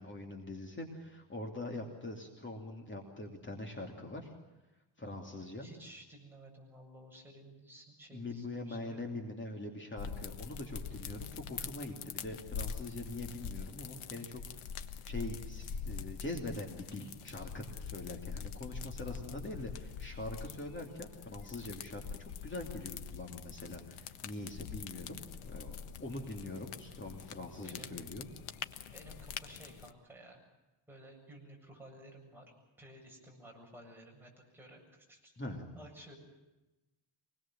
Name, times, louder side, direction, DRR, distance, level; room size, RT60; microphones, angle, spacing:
voice 1, 0.0-4.3 5.0-5.7 8.1-28.3 35.4-35.7, left 2 dB, 25° left, 2 dB, 2.8 m, -43 dB
voice 2, 5.6-9.1 19.1-19.4 27.6-28.0 28.9-30.4 30.9-32.5 32.8-35.4 35.7-36.1, right 1 dB, 5° right, -2 dB, 7.7 m, -54 dB
sound 1, 10.0-29.9, left 7 dB, 85° left, 1.5 m, -44 dB
25.5 x 21.0 x 7.6 m, 1.0 s
wide cardioid pair, 155°, 48 cm